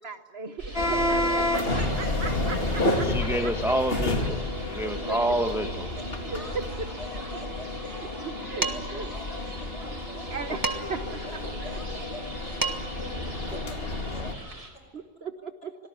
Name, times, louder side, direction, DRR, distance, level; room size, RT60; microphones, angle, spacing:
voice 1, 0.0-1.8 2.2-2.6 3.0-3.1 4.8-5.2 6.3-6.9 8.4-9.1 10.3-11.2 11.6-11.8 14.9-15.7, right 4 dB, 65° right, 8 dB, 1.4 m, -37 dB
sound 1, 0.6-14.7, right 1 dB, 85° right, 5.1 m, -43 dB
sound 2, 0.7-14.3, left 1 dB, 60° left, 2.7 m, -30 dB
voice 2, 1.8-4.3 6.0-6.1 6.3-8.2 8.7-10.5 11.3-13.8 14.1-14.8, left 1 dB, 85° left, 4 dB, 6.6 m, -45 dB
voice 3, 3.0-5.9, right 1 dB, 5° right, 5 dB, 1.0 m, -28 dB
Dishes pots and pans, 8.6-9.0 10.6-11.1 12.3-12.4 12.6-13.1, right 3 dB, 20° right, 1.5 m, -30 dB
25.5 x 18.5 x 9.8 m, 1.3 s
omnidirectional pair, 1.1 m